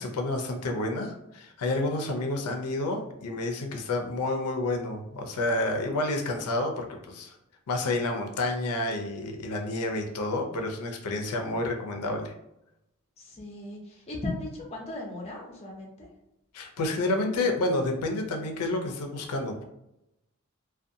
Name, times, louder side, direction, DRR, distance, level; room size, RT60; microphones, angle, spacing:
voice 1, 0.0-7.4 7.7-12.3 16.5-19.6, left 2 dB, 90° left, 3 dB, 0.5 m, -29 dB
voice 2, 13.2-16.1, left 2 dB, 30° left, -1 dB, 0.5 m, -37 dB
2.5 x 2.2 x 2.6 m, 0.85 s
head